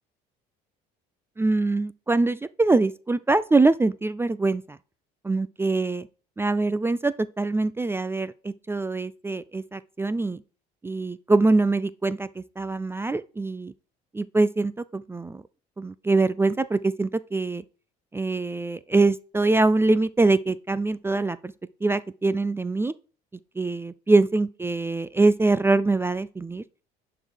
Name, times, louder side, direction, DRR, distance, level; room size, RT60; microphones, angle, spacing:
voice 1, 1.4-4.8 5.2-6.1 6.4-10.4 10.8-13.7 14.1-15.4 15.8-17.6 18.1-21.5 21.8-22.9 23.6-26.6, right 3 dB, 15° right, 0.4 m, -23 dB
11.0 x 3.9 x 5.1 m
supercardioid pair, 90°, 19 cm